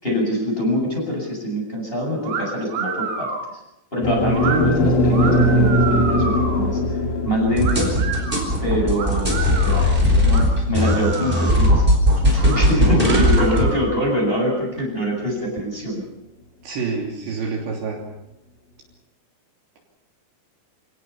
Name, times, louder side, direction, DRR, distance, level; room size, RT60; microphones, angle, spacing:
voice 1, 0.0-3.3 3.9-6.8 7.2-8.2 8.6-11.8 12.2-16.0, equal, 10° left, -3 dB, 7.9 m, -24 dB
sound 1, 2.2-2.4 2.7-3.5 4.3-4.6 5.1-6.6 7.6-8.4 8.9-9.9 10.3-10.4 10.8-11.8 12.4-12.6 13.0-14.1, right 5 dB, 90° right, 6.0 m, -29 dB
sound 2, 4.0-12.3, equal, 65° left, 5.2 m, -21 dB
sound 3, 7.6-13.7, left 1 dB, 10° right, 4.5 m, -18 dB
voice 2, 12.8-13.3 16.6-18.0, right 4 dB, 60° right, 0 dB, 5.1 m, -27 dB
27.5 x 18.0 x 7.1 m, 0.91 s
omnidirectional pair, 5.9 m